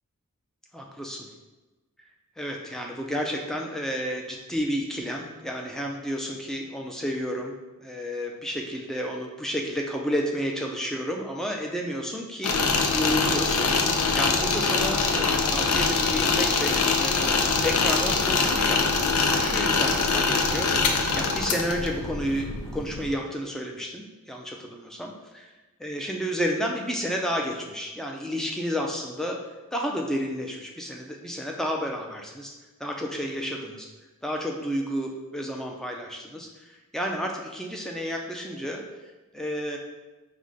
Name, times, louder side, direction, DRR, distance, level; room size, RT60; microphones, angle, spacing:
voice 1, 0.7-1.3 2.4-7.5 7.8-12.6 12.9-25.5 25.8-32.5 32.8-33.9 34.2-38.8 39.3-39.8, equal, ahead, 0 dB, 0.4 m, -31 dB
sound 1, 12.4-23.1, left 4 dB, 85° left, 0.5 m, -24 dB
4.7 x 2.1 x 3.8 m, 1.2 s
head